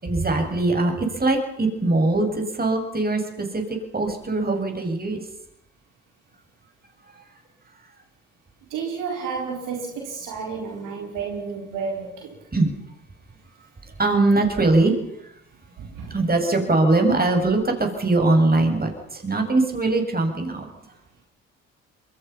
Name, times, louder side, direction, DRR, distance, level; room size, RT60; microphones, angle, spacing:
voice 1, 0.0-3.6 3.9-5.2 12.5-12.7 14.0-14.9 16.1-20.7, right 2 dB, 25° right, 7.4 m, -21 dB
voice 2, 8.7-12.4 15.8-16.2, right 5 dB, 65° right, 4.6 m, -31 dB
27.5 x 23.0 x 5.8 m
hypercardioid pair, 50°, 34 cm